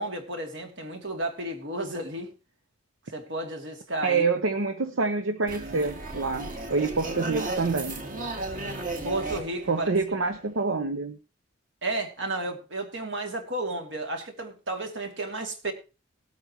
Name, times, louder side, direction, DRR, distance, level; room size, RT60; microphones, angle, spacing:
voice 1, 0.0-2.3 3.1-4.3 9.0-9.9 11.8-15.7, right 2 dB, 65° right, 2.5 m, -32 dB
voice 2, 4.0-8.0 9.7-11.2, right 4 dB, 85° right, 0.9 m, -27 dB
sound 1, 5.5-10.6, right 2 dB, 45° right, 2.1 m, -35 dB
19.0 x 8.5 x 3.0 m
head